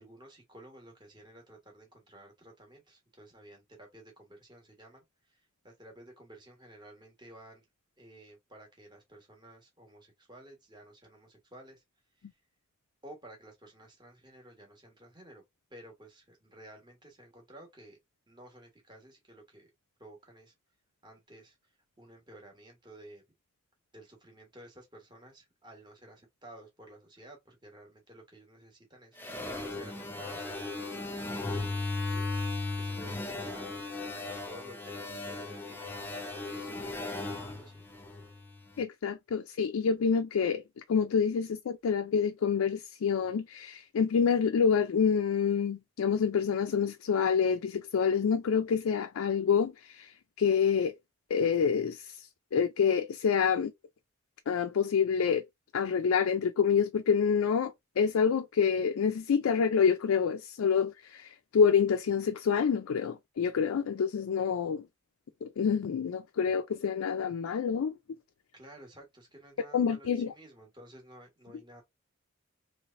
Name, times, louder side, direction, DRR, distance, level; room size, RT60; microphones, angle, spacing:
voice 1, 0.0-7.7 8.0-11.8 12.2-12.3 13.0-15.4 15.7-18.0 18.3-19.7 20.0-20.5 21.0-21.6 22.0-23.2 23.9-31.4 32.1-32.3 32.7-33.9 34.3-36.0 36.3-37.8 68.5-71.8, right 1 dB, 20° right, 1.3 m, -53 dB
sound 1, 29.2-38.6, left 2 dB, 10° left, 0.6 m, -36 dB
voice 2, 38.8-51.0 51.3-53.7 54.5-55.5 55.7-64.9 65.4-68.2 69.7-70.3, left 6 dB, 80° left, 0.4 m, -27 dB
3.3 x 3.1 x 2.5 m
head